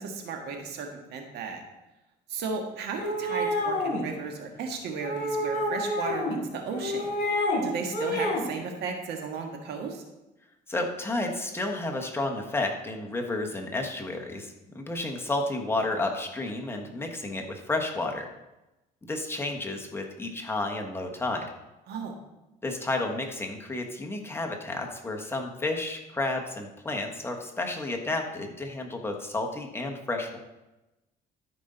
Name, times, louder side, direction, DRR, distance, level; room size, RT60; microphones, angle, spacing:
voice 1, 0.0-1.6 2.3-7.1 7.6-10.0 21.9-22.2, right 5 dB, 75° right, 3 dB, 1.6 m, -35 dB
sound 1, 2.9-4.0 5.0-6.4 6.7-7.6 7.9-8.4, left 1 dB, 50° left, 3.2 m, -28 dB
voice 2, 10.7-18.3 19.1-21.5 22.6-30.4, left 2 dB, 15° left, 1 dB, 1.4 m, -31 dB
13.0 x 5.4 x 4.0 m, 0.99 s
cardioid pair, 110°, 17 cm